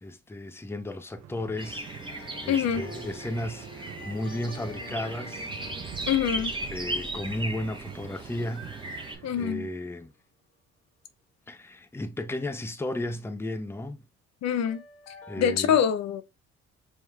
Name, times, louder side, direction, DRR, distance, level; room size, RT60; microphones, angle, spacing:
voice 1, 0.0-5.5 6.7-10.1 11.5-14.0 15.3-15.8, left 1 dB, 10° left, 0.6 m, -34 dB
sound 1, 1.2-9.5, right 8 dB, 60° right, 0.7 m, -45 dB
sound 2, 1.6-9.2, right 1 dB, 15° right, 1.2 m, -37 dB
sound 3, 2.1-9.3 14.7-15.6, left 1 dB, 90° left, 1.1 m, -48 dB
voice 2, 2.5-2.9 6.1-6.5 9.2-9.7 14.4-14.8 15.4-16.2, left 8 dB, 60° left, 0.6 m, -25 dB
5.6 x 3.1 x 2.3 m
supercardioid pair, 60°, 31 cm